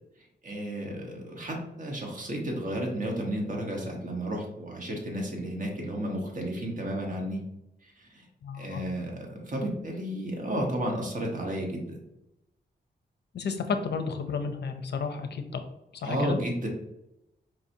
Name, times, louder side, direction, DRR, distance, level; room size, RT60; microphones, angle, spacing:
voice 1, 0.4-7.4 8.0-8.2 8.6-12.0 16.0-16.7, right 1 dB, 45° right, 0 dB, 1.1 m, -32 dB
voice 2, 8.4-8.8 13.3-15.6 16.0-16.4, left 5 dB, 70° left, 7 dB, 0.5 m, -32 dB
4.7 x 2.8 x 2.6 m, 0.86 s
wide cardioid pair, 90°, 18 cm